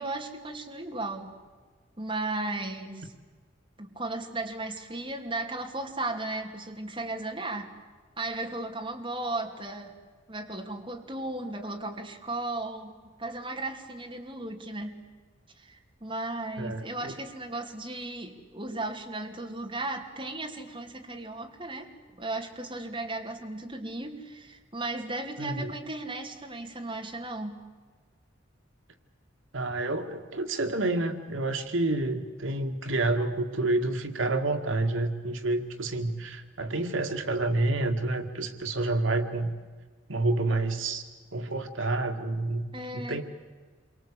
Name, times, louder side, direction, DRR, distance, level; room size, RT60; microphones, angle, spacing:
voice 1, 0.0-1.3 2.0-3.1 3.8-7.7 8.2-10.0 10.3-15.0 15.6-27.6 42.7-43.2, right 2 dB, 25° right, 2 dB, 2.7 m, -35 dB
voice 2, 16.6-17.1 25.4-25.7 29.5-39.5 40.1-41.0 41.3-42.6 42.9-43.2, right 2 dB, 85° right, 6 dB, 2.0 m, -29 dB
28.0 x 24.5 x 8.6 m, 1.4 s
head